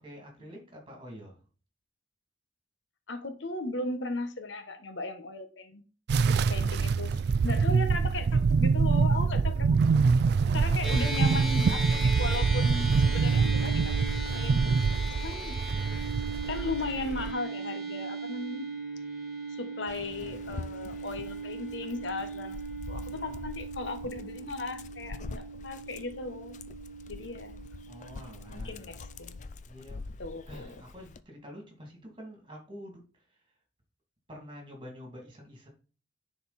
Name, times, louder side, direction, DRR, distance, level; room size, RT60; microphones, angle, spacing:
voice 1, 0.0-1.4 10.3-11.0 16.2-16.5 20.2-20.5 22.9-23.5 27.9-28.9 29.7-30.0 30.5-33.5 34.3-35.7, equal, 25° right, 1 dB, 2.6 m, -48 dB
voice 2, 3.1-5.8 6.2-9.8 10.5-14.0 14.3-15.6 16.5-18.7 19.5-22.6 22.9-26.6 27.1-27.6 28.5-29.3 30.2-30.8, left 3 dB, 75° left, 8 dB, 1.1 m, -37 dB
sound 1, 6.1-17.3, right 5 dB, 60° right, 0.3 m, -25 dB
sound 2, 10.8-29.4, right 3 dB, ahead, 2.8 m, -38 dB
Dog, 19.9-31.2, left 3 dB, 40° left, 0.4 m, -45 dB
10.5 x 4.3 x 4.2 m, 0.37 s
head